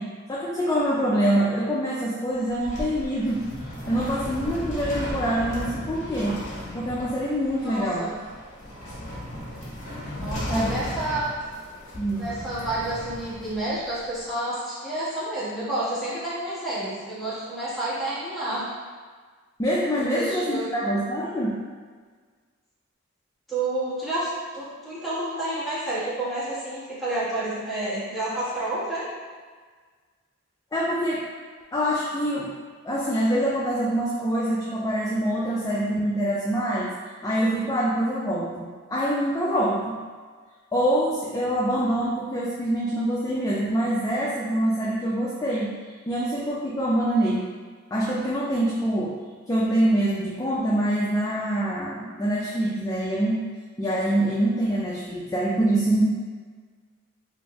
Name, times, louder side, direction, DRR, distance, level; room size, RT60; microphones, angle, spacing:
voice 1, 0.0-3.5 3.9-6.4 6.7-8.1 10.5-10.7 12.0-12.3 19.6-21.6 30.7-31.2 31.7-32.5 32.8-36.9 37.2-40.0 40.7-45.7 46.1-47.5 47.9-49.2 49.5-53.4 53.8-56.0, right 1 dB, 15° left, -6 dB, 0.3 m, -25 dB
sound 1, 2.3-14.2, left 1 dB, 35° left, 0.9 m, -36 dB
voice 2, 7.6-8.1 10.2-11.3 12.2-18.6 20.0-20.9 23.5-29.0, right 1 dB, ahead, -12 dB, 1.2 m, -30 dB
3.5 x 2.6 x 2.9 m, 1.5 s
head